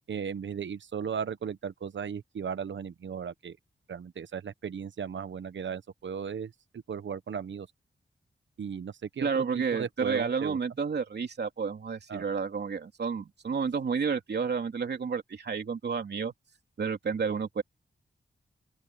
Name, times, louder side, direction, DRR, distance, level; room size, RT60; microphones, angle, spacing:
voice 1, 0.1-3.6 3.9-7.7 8.6-10.6 12.1-12.3, right 7 dB, 80° right, 1.2 m, -36 dB
voice 2, 9.2-16.3 16.8-17.6, right 5 dB, 65° right, 2.9 m, -30 dB
open air
wide cardioid pair, 125°, 19 cm